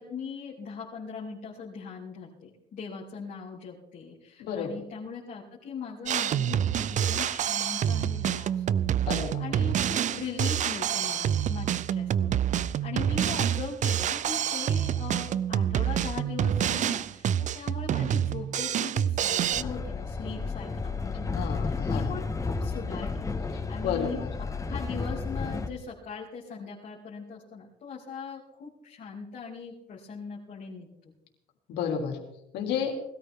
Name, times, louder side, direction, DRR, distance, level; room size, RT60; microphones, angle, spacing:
voice 1, 0.0-8.7 9.4-31.1, left 5 dB, 50° left, -4 dB, 3.0 m, -40 dB
voice 2, 4.4-4.7 9.1-9.4 21.3-22.2 23.8-24.3 31.7-32.2 32.5-33.0, left 7 dB, 80° left, 3 dB, 3.1 m, -31 dB
Drum kit, 6.1-19.6, right 9 dB, 45° right, 0.5 m, -27 dB
Train, 19.5-25.7, left 4 dB, 20° left, 1.3 m, -32 dB
20.0 x 13.5 x 3.7 m, 0.83 s
cardioid pair, 110°, 17 cm